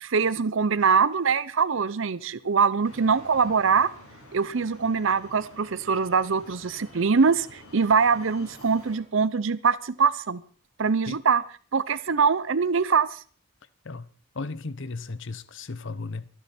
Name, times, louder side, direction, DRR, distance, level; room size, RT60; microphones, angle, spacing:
voice 1, 0.0-3.9 4.3-10.4 10.8-11.4 11.7-13.2, right 5 dB, 60° right, 0.6 m, -23 dB
sound 1, 2.8-9.0, left 1 dB, 80° left, 7.3 m, -49 dB
voice 2, 14.3-16.3, left 3 dB, 60° left, 0.8 m, -35 dB
25.0 x 10.0 x 4.3 m
head